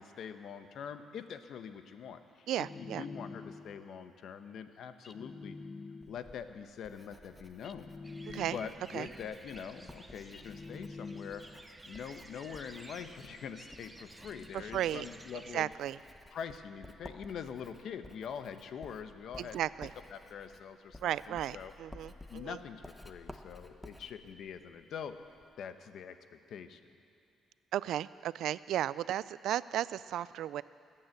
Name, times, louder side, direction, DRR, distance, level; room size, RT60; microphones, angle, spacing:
voice 1, 0.0-5.6 6.1-7.9 8.5-11.4 11.9-15.7 16.3-19.6 20.1-21.7 22.3-25.2 25.6-26.8, left 7 dB, 70° left, 9 dB, 0.9 m, -44 dB
sound 1, 2.5-3.9 5.0-6.4 7.6-9.0 10.3-11.7, left 3 dB, 35° left, 0.6 m, -47 dB
voice 2, 2.5-3.0 8.3-8.6 8.9-9.1 14.5-15.1 15.5-16.0 19.4-19.9 21.0-22.6 27.7-30.6, right 12 dB, 80° right, 18 dB, 0.3 m, -34 dB
Writing, 6.0-25.5, left 1 dB, 10° left, 1.0 m, -55 dB
sound 2, 8.0-15.7, right 2 dB, 15° right, 0.9 m, -53 dB
20.5 x 8.9 x 7.8 m, 2.6 s
cardioid pair, 90°, 0 cm